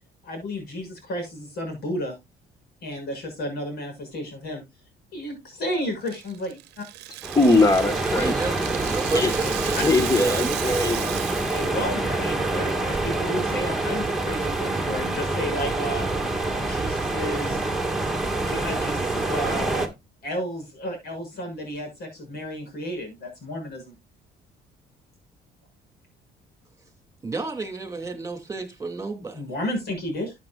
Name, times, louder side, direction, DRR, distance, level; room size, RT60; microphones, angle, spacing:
voice 1, 0.2-2.2 2.8-4.6 5.1-6.9 9.4-9.8 11.5-16.1 16.6-17.6 18.4-19.9 20.2-23.9 29.3-30.3, equal, 70° left, 6.8 m, -32 dB
Rattle (instrument), 6.1-11.9 12.1-12.3 12.7-13.1, right 17 dB, 85° right, 0.8 m, -35 dB
sound 1, 7.2-19.9, right 2 dB, ahead, 1.9 m, -26 dB
voice 2, 7.3-8.3 9.1-9.3 9.6-11.1, left 2 dB, 20° left, 1.5 m, -21 dB
voice 3, 8.1-10.5 27.2-29.4, right 3 dB, 20° right, 2.6 m, -32 dB
13.0 x 8.4 x 2.4 m
cardioid pair, 110°, 17 cm